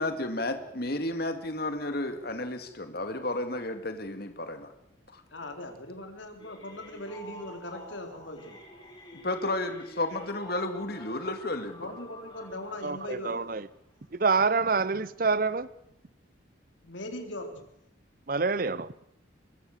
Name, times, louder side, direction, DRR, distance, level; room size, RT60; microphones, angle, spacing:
voice 1, 0.0-4.7 5.1-5.2 9.2-11.8, left 2 dB, 55° left, 8 dB, 2.2 m, -32 dB
voice 2, 5.3-8.6 11.8-13.4 16.8-17.7, left 1 dB, 75° left, 5 dB, 3.9 m, -40 dB
sound 1, 6.4-14.0 14.5-14.7 15.2-15.3 15.5-15.6, equal, 25° left, 6.5 m, -49 dB
voice 3, 12.8-13.7 14.1-15.7 18.3-18.9, right 4 dB, 45° right, 18 dB, 0.8 m, -27 dB
24.5 x 21.5 x 6.7 m, 0.79 s
head